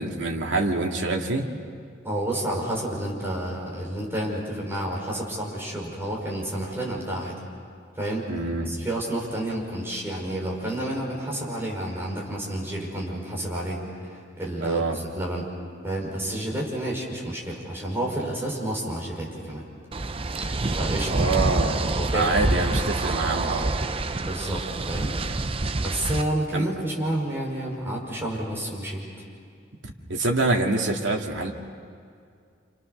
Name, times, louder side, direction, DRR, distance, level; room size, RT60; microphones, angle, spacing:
voice 1, 0.0-1.5 8.3-8.7 14.6-15.0 21.1-23.9 26.5-26.7 30.1-31.5, right 2 dB, 75° right, 1 dB, 2.4 m, -26 dB
voice 2, 2.0-7.3 8.0-8.3 8.7-14.8 15.1-15.5 15.8-19.6 20.7-21.2 21.9-22.5 24.2-25.2 25.8-29.0, right 1 dB, 10° right, -3 dB, 5.6 m, -30 dB
sound 1, 19.9-26.2, right 2 dB, 30° right, 0.6 m, -27 dB
29.0 x 28.0 x 6.7 m, 2.3 s
head